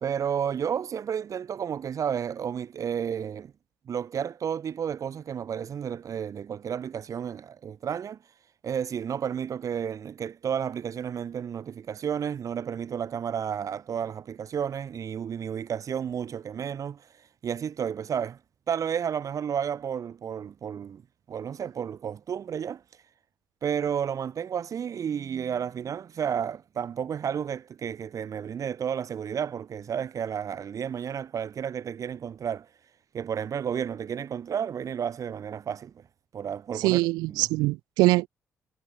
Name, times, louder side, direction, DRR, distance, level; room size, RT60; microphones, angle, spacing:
voice 1, 0.0-3.5 3.9-8.2 8.6-18.4 18.7-21.0 21.3-22.8 23.6-32.7 33.1-35.9 36.3-37.0 37.3-37.5, right 8 dB, 55° right, 0.9 m, -32 dB
voice 2, 36.8-38.3, right 21 dB, 85° right, 0.6 m, -23 dB
supercardioid pair, 55°, 7 cm